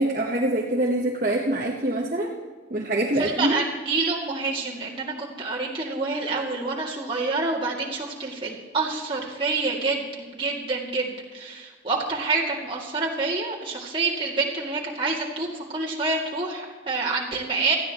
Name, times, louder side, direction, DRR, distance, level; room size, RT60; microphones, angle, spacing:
voice 1, 0.0-2.4 2.7-3.6, right 1 dB, 45° right, -1 dB, 1.1 m, -24 dB
voice 2, 3.2-17.8, right 3 dB, 30° right, -3 dB, 2.3 m, -27 dB
19.0 x 14.0 x 3.0 m, 1.5 s
head